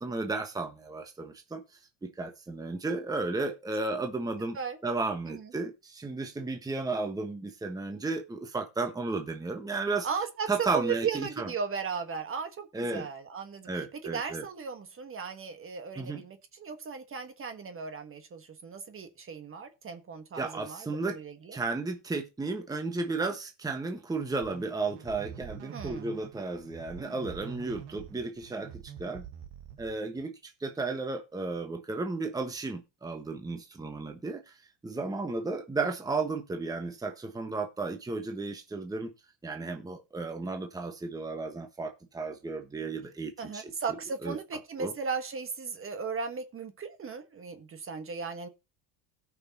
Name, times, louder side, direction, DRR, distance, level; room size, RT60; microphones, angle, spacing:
voice 1, 0.0-1.6 2.0-4.6 4.8-10.1 10.5-11.5 12.7-13.1 13.7-14.5 16.0-16.2 20.3-21.2 21.5-29.3 29.8-34.6 34.8-39.1 39.4-43.7 44.2-44.4 44.8-44.9, right 3 dB, 10° right, 1.3 m, -34 dB
voice 2, 10.0-21.6 25.7-26.1 43.4-48.5, right 5 dB, 25° right, 1.3 m, -36 dB
sound 1, 24.4-30.2, right 9 dB, 55° right, 1.4 m, -46 dB
17.0 x 6.0 x 2.8 m
supercardioid pair, 125°, 48 cm